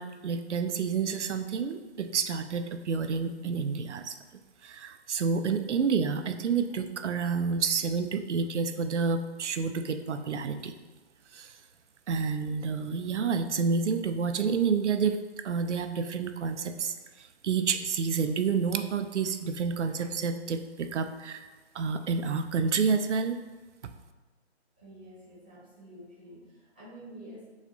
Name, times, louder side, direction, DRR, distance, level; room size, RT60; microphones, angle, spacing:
voice 1, 0.0-4.1 4.6-10.7 11.3-11.5 12.1-15.2 15.4-21.4 21.7-23.4 23.8-23.9, right 5 dB, 85° right, 9 dB, 0.5 m, -29 dB
voice 2, 24.8-27.5, equal, 10° right, -12 dB, 0.4 m, -48 dB
6.2 x 2.4 x 2.7 m, 1.2 s
figure-of-eight pair, 150°, 34 cm